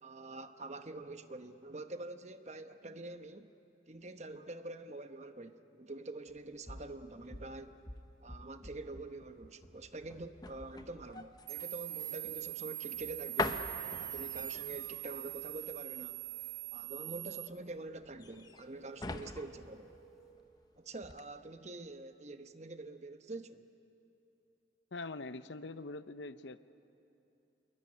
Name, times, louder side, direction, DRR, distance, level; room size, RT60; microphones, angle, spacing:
voice 1, 0.0-3.5 3.9-7.8 8.2-13.7 14.0-16.2 16.7-19.9 20.8-23.6, right 2 dB, 40° right, 8 dB, 1.0 m, -46 dB
Running Onto Porch Slamming Screen Door, 6.3-20.6 21.0-21.2, left 2 dB, 20° left, 0.9 m, -45 dB
sound 1, 11.5-17.5, right 15 dB, 80° right, 0.8 m, -42 dB
sound 2, 18.3-20.4, right 5 dB, ahead, 4.2 m, -60 dB
voice 2, 24.9-26.6, left 3 dB, 75° left, 13 dB, 0.8 m, -43 dB
27.0 x 22.0 x 9.9 m, 2.9 s
head